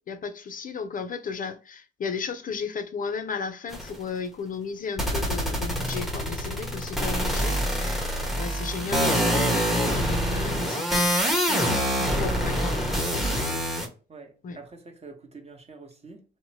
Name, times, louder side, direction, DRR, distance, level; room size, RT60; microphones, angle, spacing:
voice 1, 0.1-11.1 11.4-13.6 14.4-14.6, left 5 dB, 45° left, 0.5 m, -35 dB
sound 1, 3.7-4.0 5.0-13.9, equal, ahead, 0.7 m, -25 dB
voice 2, 14.1-16.2, right 4 dB, 30° right, 0.9 m, -46 dB
2.8 x 2.1 x 2.8 m
cardioid pair, 90°, 20 cm